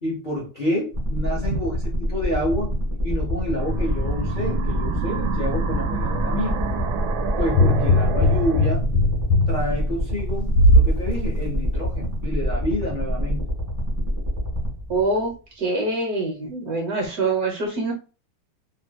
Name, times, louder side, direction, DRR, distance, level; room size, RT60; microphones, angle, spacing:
voice 1, 0.0-1.7 2.0-2.7 3.0-6.6 7.4-8.9 9.5-13.5, left 1 dB, 55° left, 0.5 m, -28 dB
sound 1, 0.9-15.3, equal, 15° right, 0.7 m, -26 dB
sound 2, 3.6-8.7, right 6 dB, 80° right, 1.3 m, -29 dB
sound 3, 7.5-10.9 11.4-11.5, left 1 dB, 85° left, 1.5 m, -19 dB
voice 2, 14.9-17.9, right 2 dB, 60° right, 1.0 m, -25 dB
3.2 x 2.7 x 2.2 m
omnidirectional pair, 2.2 m